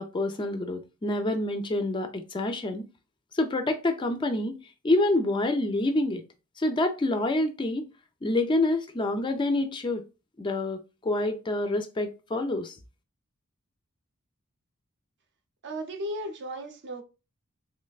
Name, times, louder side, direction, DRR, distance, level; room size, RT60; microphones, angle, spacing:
voice 1, 0.0-2.8 3.3-6.2 6.6-7.9 8.2-10.1 10.4-12.8, left 2 dB, 20° left, 0.3 m, -27 dB
voice 2, 15.6-17.0, right 1 dB, 50° right, 0.6 m, -35 dB
3.2 x 3.2 x 2.3 m
head